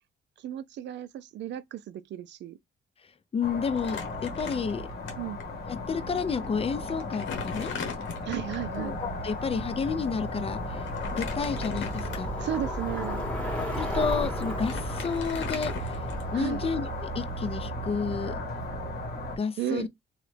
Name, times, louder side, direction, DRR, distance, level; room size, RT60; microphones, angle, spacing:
voice 1, 0.4-2.6 5.2-5.4 8.2-9.0 12.4-13.2 16.3-16.6 19.6-19.9, right 11 dB, 65° right, 0.4 m, -34 dB
voice 2, 3.3-4.8 5.7-7.7 8.8-12.5 13.7-16.0 16.3-18.3 19.4-19.9, left 5 dB, 30° left, 0.5 m, -31 dB
sound 1, 3.4-19.4, left 1 dB, 55° left, 1.3 m, -35 dB
Crumpling crinkling, 3.8-5.1 5.4-5.5 6.4-6.5 6.9-8.7 10.9-12.5 13.1-13.2 14.1-14.2 14.4-16.5, left 6 dB, 70° left, 1.0 m, -39 dB
Bicycle, 7.2-18.1, left 1 dB, 5° left, 1.7 m, -37 dB
3.0 x 2.3 x 3.2 m
cardioid pair, 90°, 20 cm